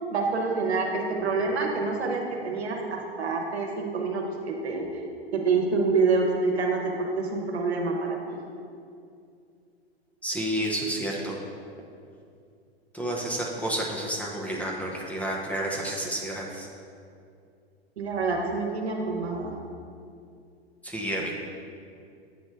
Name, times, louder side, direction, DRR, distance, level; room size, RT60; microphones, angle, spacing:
voice 1, 0.1-4.9 5.3-8.4 18.0-19.5, right 4 dB, 75° right, 1 dB, 1.0 m, -27 dB
voice 2, 10.2-11.4 12.9-16.7 20.8-21.4, right 1 dB, 5° left, -2 dB, 0.6 m, -30 dB
7.8 x 3.2 x 4.5 m, 2.4 s
figure-of-eight pair, 100°, 32 cm